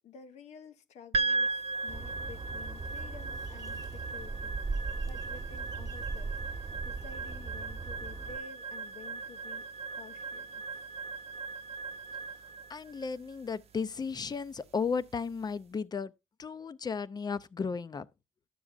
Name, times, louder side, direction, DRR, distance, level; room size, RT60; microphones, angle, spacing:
voice 1, 0.0-10.8, left 5 dB, 80° left, 0.8 m, -52 dB
sound 1, 1.1-15.5, right 3 dB, 60° right, 0.6 m, -38 dB
Bird, 1.9-8.4, right 3 dB, 30° right, 1.1 m, -39 dB
voice 2, 12.7-16.1 16.4-18.1, left 5 dB, 35° left, 0.6 m, -34 dB
11.0 x 7.0 x 2.4 m
cardioid pair, 75°, 11 cm